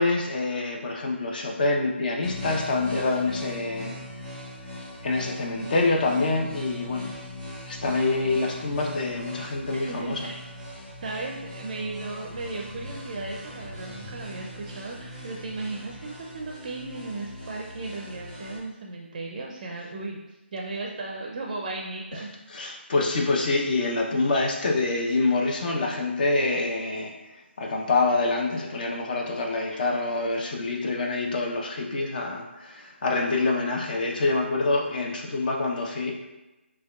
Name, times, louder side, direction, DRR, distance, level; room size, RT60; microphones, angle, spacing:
voice 1, 0.0-4.0 5.0-7.1 7.7-10.2 22.5-27.1 27.6-36.3, left 3 dB, 45° left, 1 dB, 0.6 m, -26 dB
sound 1, 2.2-18.6, left 1 dB, ahead, 0.6 m, -40 dB
voice 2, 9.7-10.4 11.0-20.2 20.5-22.3 29.7-29.8, right 3 dB, 40° right, -1 dB, 0.4 m, -35 dB
6.0 x 2.3 x 2.3 m, 1.0 s
figure-of-eight pair, 150°, 7 cm